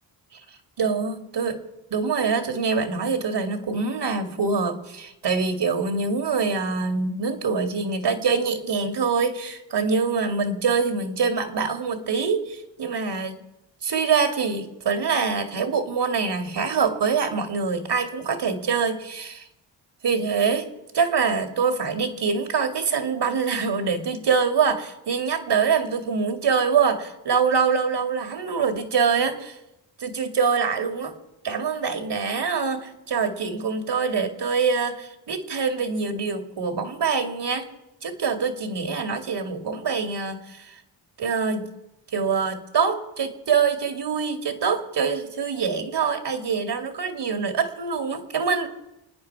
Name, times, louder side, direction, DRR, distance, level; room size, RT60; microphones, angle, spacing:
voice 1, 0.8-1.6 1.9-13.4 13.8-19.5 20.0-20.7 20.9-29.6 30.0-31.1 31.4-37.7 38.0-40.8 41.2-41.7 42.1-48.7, right 5 dB, 55° right, 6 dB, 2.3 m, -24 dB
28.0 x 9.6 x 4.7 m, 0.92 s
supercardioid pair, 50°, 48 cm